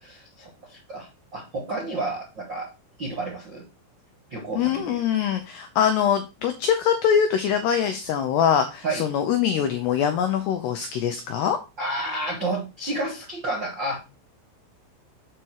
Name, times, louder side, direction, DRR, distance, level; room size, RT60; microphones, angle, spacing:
voice 1, 0.0-2.7 3.0-3.6 4.3-5.0 8.8-9.1 11.8-14.0, right 2 dB, 65° right, -2 dB, 1.1 m, -31 dB
voice 2, 4.5-11.6, left 8 dB, 85° left, 6 dB, 2.3 m, -23 dB
8.1 x 4.3 x 6.5 m, 0.28 s
omnidirectional pair, 5.9 m